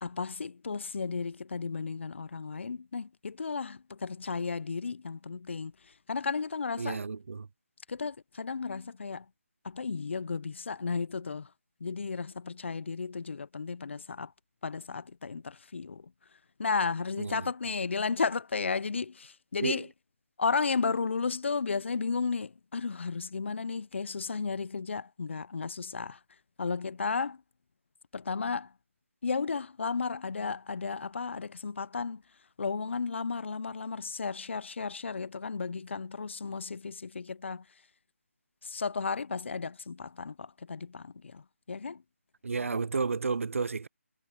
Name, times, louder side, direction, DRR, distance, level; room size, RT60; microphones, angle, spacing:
voice 1, 0.0-5.7 6.1-7.0 7.9-9.2 9.6-11.5 11.8-14.3 14.6-16.1 16.6-19.9 20.4-26.2 26.6-27.4 28.1-28.7 29.2-32.2 32.6-37.6 38.6-41.4 41.7-42.0, left 5 dB, 55° left, 0.9 m, -33 dB
voice 2, 6.8-7.5 17.2-17.5 19.6-19.9 42.4-43.9, right 4 dB, 65° right, 0.5 m, -31 dB
figure-of-eight pair, 160°, 8 cm